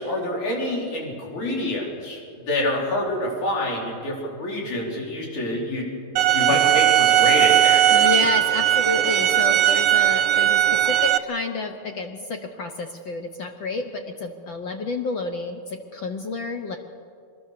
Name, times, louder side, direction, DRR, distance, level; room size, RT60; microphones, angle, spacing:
voice 1, 0.0-2.2 2.5-5.9 6.3-8.1, left 1 dB, 80° left, -2 dB, 5.7 m, -27 dB
sound 1, 6.2-11.2, right 12 dB, 70° right, 1.5 m, -18 dB
voice 2, 7.9-16.8, left 3 dB, 60° left, 5 dB, 1.3 m, -30 dB
25.0 x 21.0 x 6.8 m, 2.3 s
omnidirectional pair, 3.3 m